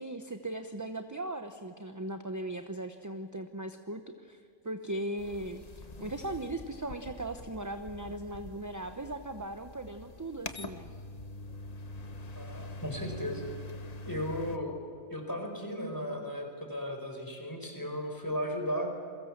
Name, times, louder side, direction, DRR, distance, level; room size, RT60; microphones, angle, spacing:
voice 1, 0.0-5.6 6.0-10.9, right 1 dB, 15° right, 7 dB, 0.8 m, -38 dB
sound 1, 5.2-14.6, left 2 dB, 35° left, 1.2 m, -45 dB
voice 2, 12.3-13.4 14.1-14.8 15.1-18.9, equal, 15° left, 3 dB, 4.5 m, -35 dB
29.0 x 22.5 x 7.4 m, 2.2 s
omnidirectional pair, 1.3 m